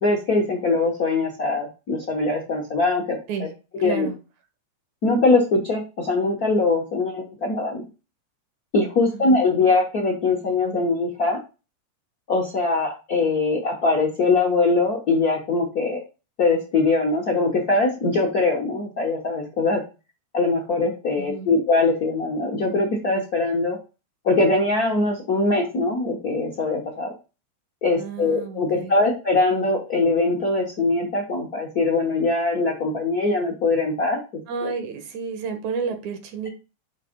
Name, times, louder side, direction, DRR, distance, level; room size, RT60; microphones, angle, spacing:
voice 1, 0.0-3.2 3.8-4.1 5.0-7.9 8.7-11.4 12.3-16.0 16.4-19.8 20.3-23.8 24.2-27.1 27.8-34.2 34.6-34.7, left 3 dB, 55° left, -1 dB, 1.0 m, -22 dB
voice 2, 3.8-4.2 9.0-9.6 21.2-21.5 27.9-28.9 34.5-36.5, right 6 dB, 75° right, 6 dB, 2.4 m, -31 dB
6.6 x 3.5 x 5.1 m, 0.30 s
omnidirectional pair, 3.4 m